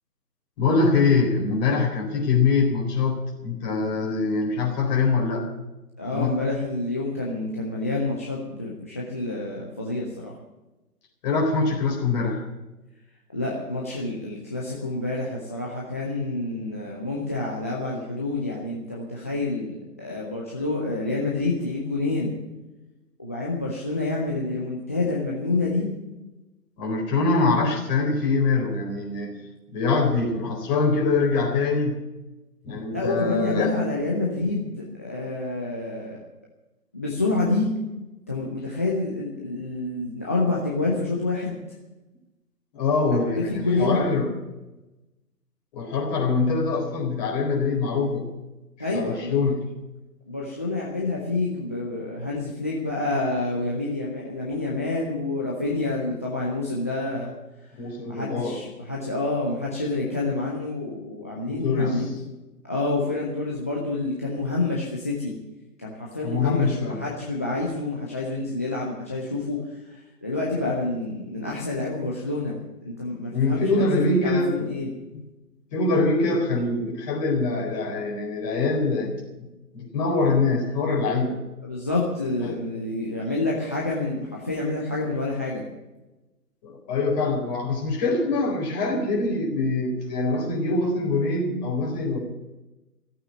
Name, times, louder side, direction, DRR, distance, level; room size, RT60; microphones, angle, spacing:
voice 1, 0.6-5.5 6.1-6.4 11.2-12.4 26.8-29.3 29.7-32.0 32.6-33.7 42.7-44.3 45.7-48.3 48.8-49.6 57.8-58.6 61.5-62.0 66.2-67.0 73.3-74.5 75.7-79.1 79.4-79.5 79.7-81.4 82.4-82.6 86.6-92.2, left 3 dB, 25° left, -1 dB, 4.2 m, -24 dB
voice 2, 6.0-10.3 13.3-22.3 23.2-25.9 32.9-36.2 36.9-37.7 38.3-41.6 43.1-43.2 43.5-44.0 48.8-49.4 50.3-57.3 58.1-62.0 62.7-65.3 65.8-69.6 69.9-74.9 81.6-85.6, left 2 dB, 10° left, -4 dB, 0.6 m, -28 dB
15.0 x 8.6 x 9.5 m, 1.0 s
figure-of-eight pair, 140°, 47 cm